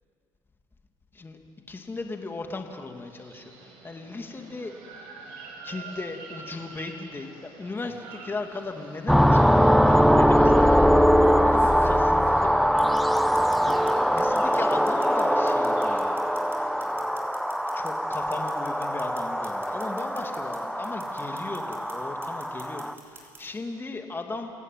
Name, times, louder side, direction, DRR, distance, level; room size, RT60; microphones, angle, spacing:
voice 1, 1.7-4.7 5.6-13.0 13.3-13.7 14.1-16.3 16.6-17.2 17.7-24.5, left 3 dB, 20° left, 4 dB, 2.6 m, -37 dB
sound 1, 2.9-16.9, right 4 dB, 80° right, 5.9 m, -48 dB
sound 2, 7.8-8.1 9.3-9.4 11.0-13.9 14.2-20.6 20.8-21.9 22.2-23.4, right 3 dB, 25° right, 6.1 m, -45 dB
sound 3, 9.1-22.9, equal, ahead, 1.0 m, -22 dB
28.5 x 16.5 x 9.5 m, 2.5 s
supercardioid pair, 85°, 10 cm